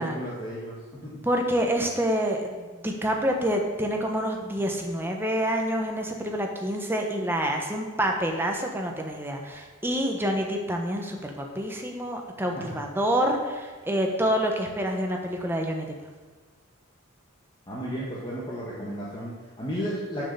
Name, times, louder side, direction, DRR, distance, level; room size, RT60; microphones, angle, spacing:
voice 1, 0.0-1.1 17.7-20.3, equal, 20° left, -6 dB, 1.4 m, -33 dB
voice 2, 1.2-15.9, equal, 10° right, 2 dB, 1.0 m, -27 dB
7.5 x 6.6 x 6.8 m, 1.3 s
head